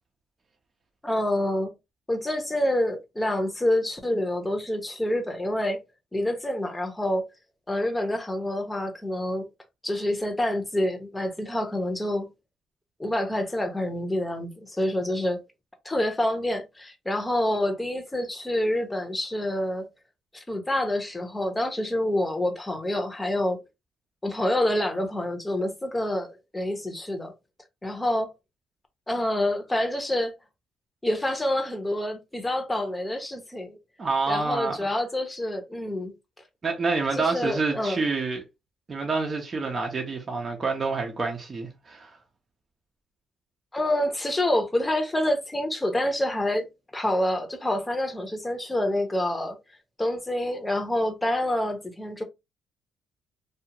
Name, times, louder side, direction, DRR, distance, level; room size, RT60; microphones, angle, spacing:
voice 1, 1.0-1.7 2.1-5.8 6.1-7.3 7.7-9.5 9.8-12.3 13.0-15.4 15.8-19.9 20.3-23.6 24.2-27.3 27.8-28.3 29.1-30.3 31.0-33.8 34.3-36.1 37.1-38.0 43.7-49.6 50.0-52.2, left 1 dB, 15° left, 0.8 m, -27 dB
voice 2, 34.0-34.9 36.6-38.4 38.9-42.2, right 3 dB, 35° right, 0.7 m, -27 dB
2.4 x 2.4 x 2.9 m
cardioid pair, 90°, 0 cm